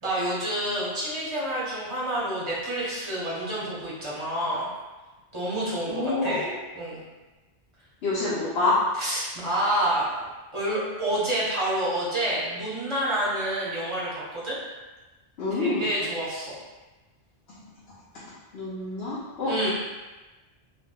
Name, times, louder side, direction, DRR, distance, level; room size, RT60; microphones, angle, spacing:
voice 1, 0.0-4.7 5.3-6.5 6.7-7.0 8.9-10.1 10.5-14.6 15.5-16.5 19.5-19.7, right 1 dB, 30° right, -8 dB, 1.0 m, -28 dB
voice 2, 5.9-6.5 8.0-8.8 15.4-16.0 18.5-19.5, left 2 dB, 75° left, -8 dB, 0.9 m, -27 dB
3.4 x 2.4 x 2.2 m, 1.2 s
omnidirectional pair, 1.1 m